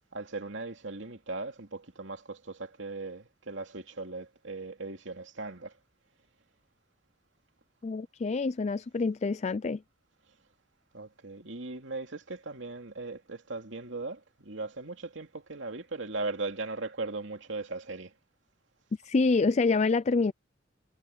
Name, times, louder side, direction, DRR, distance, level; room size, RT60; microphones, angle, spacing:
voice 1, 0.1-5.7 10.9-18.1, right 3 dB, 75° right, 2.6 m, -38 dB
voice 2, 7.8-9.8 19.0-20.3, left 4 dB, 35° left, 0.4 m, -26 dB
head